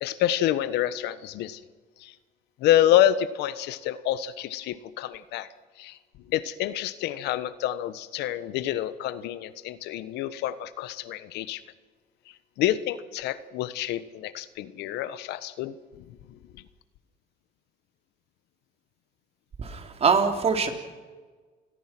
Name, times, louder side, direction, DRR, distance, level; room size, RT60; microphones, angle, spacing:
voice 1, 0.0-1.6 2.0-2.1 2.6-5.5 5.8-6.0 6.3-11.6 12.6-15.7 16.1-16.6, left 12 dB, 85° left, 14 dB, 1.3 m, -27 dB
voice 2, 19.6-20.7, right 5 dB, 35° right, 5 dB, 3.7 m, -23 dB
28.5 x 21.0 x 6.1 m, 1.4 s
cardioid pair, 110°, 17 cm